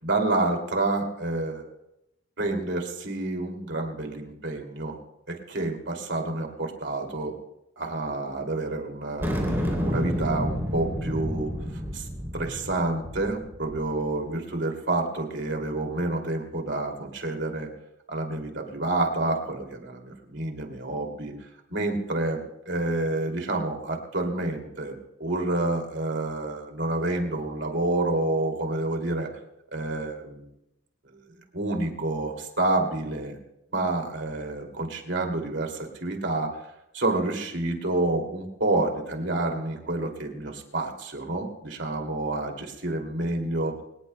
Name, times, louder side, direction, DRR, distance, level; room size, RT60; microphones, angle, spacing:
voice 1, 0.0-1.6 2.4-5.0 5.3-7.3 7.8-12.1 12.3-17.7 18.1-21.3 21.7-22.4 22.7-29.3 29.7-30.4 31.5-33.4 33.7-36.6 36.9-43.7, right 2 dB, 60° right, 3 dB, 2.6 m, -28 dB
sound 1, 9.2-13.9, equal, 10° right, 3.1 m, -30 dB
25.0 x 18.5 x 2.2 m, 0.86 s
head